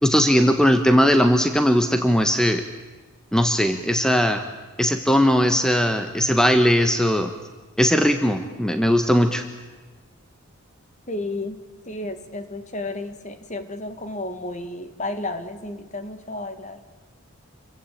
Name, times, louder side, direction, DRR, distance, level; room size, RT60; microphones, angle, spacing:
voice 1, 0.0-2.6 3.3-4.4 4.8-7.3 7.8-9.4, equal, 5° left, 7 dB, 1.2 m, -19 dB
voice 2, 11.1-11.6 11.9-16.8, left 2 dB, 35° left, 9 dB, 2.1 m, -32 dB
28.5 x 23.5 x 8.8 m, 1.3 s
head